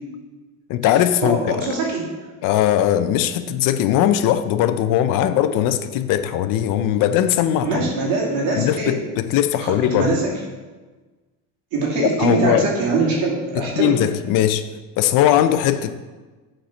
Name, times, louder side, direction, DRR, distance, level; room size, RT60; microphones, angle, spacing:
voice 1, 0.7-1.8 2.4-7.8 8.5-10.1 12.0-12.7 13.5-14.7 15.0-16.0, left 11 dB, 60° left, 11 dB, 0.6 m, -19 dB
voice 2, 1.2-2.1 7.6-9.0 9.6-10.3 11.7-14.0, right 3 dB, 70° right, -3 dB, 2.7 m, -22 dB
7.6 x 4.4 x 5.9 m, 1.3 s
cardioid pair, 150°, 37 cm